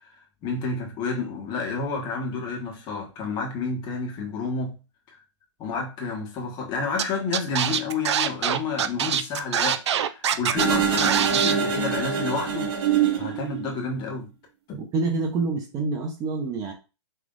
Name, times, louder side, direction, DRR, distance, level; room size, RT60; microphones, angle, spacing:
voice 1, 0.0-4.8 5.1-5.2 5.6-12.7 13.1-14.3 14.7-14.8, left 4 dB, 30° left, 1.6 m, -30 dB
Scratching (performance technique), 7.0-7.1 7.3-10.7 11.0-11.5, right 9 dB, 65° right, 0.6 m, -23 dB
sound 1, 10.6-13.9, right 7 dB, 45° right, 2.1 m, -24 dB
voice 2, 14.8-16.7, right 3 dB, 20° right, 0.9 m, -27 dB
5.8 x 3.3 x 2.6 m
hypercardioid pair, 130°, 16 cm